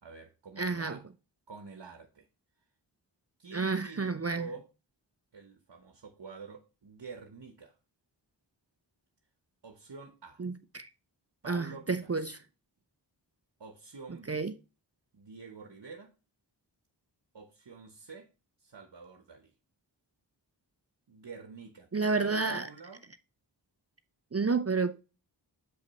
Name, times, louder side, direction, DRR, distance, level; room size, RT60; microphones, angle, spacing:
voice 1, 0.0-1.1 1.5-2.3 3.4-4.7 5.3-7.8 9.6-10.4 11.4-12.3 13.6-14.4 15.1-16.1 17.3-18.3 18.6-19.5 21.1-23.1, right 4 dB, 60° right, 1.1 m, -48 dB
voice 2, 0.6-1.0 3.5-4.4 10.4-10.9 11.5-12.4 14.3-14.5 21.9-22.7 24.3-25.0, right 4 dB, 35° right, 0.6 m, -30 dB
6.6 x 5.3 x 4.0 m
wide cardioid pair, 40°, 45 cm